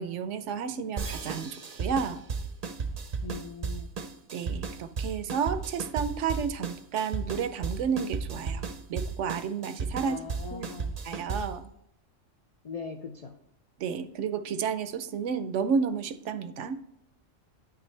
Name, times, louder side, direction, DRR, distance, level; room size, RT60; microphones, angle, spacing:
voice 1, 0.0-2.2 4.3-10.2 10.5-10.7 11.0-11.6 13.8-16.8, right 6 dB, 70° right, 11 dB, 0.9 m, -31 dB
sound 1, 1.0-11.6, right 4 dB, 45° right, 0.6 m, -35 dB
voice 2, 3.2-3.9 10.0-10.9 12.6-13.4, left 5 dB, 60° left, 4 dB, 0.4 m, -40 dB
10.0 x 5.9 x 3.2 m, 0.77 s
omnidirectional pair, 1.3 m